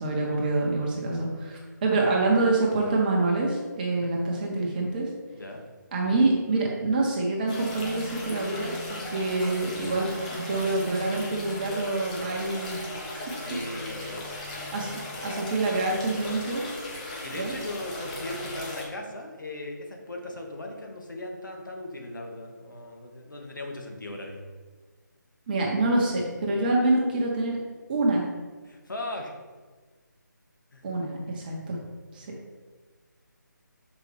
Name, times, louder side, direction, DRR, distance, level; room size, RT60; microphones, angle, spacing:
voice 1, 0.0-5.1 5.9-12.9 14.0-14.2 14.7-16.6 17.3-17.5 25.5-27.6 27.9-28.2 30.8-31.8 32.1-32.3, right 2 dB, 25° right, -2 dB, 1.4 m, -26 dB
sound 1, 7.5-18.8, left 2 dB, 20° left, 1.2 m, -37 dB
voice 2, 13.4-14.4 17.2-24.4 28.7-29.3 30.7-30.8, left 1 dB, 75° left, 1 dB, 1.8 m, -38 dB
7.3 x 5.2 x 3.4 m, 1.4 s
figure-of-eight pair, 160°, 10 cm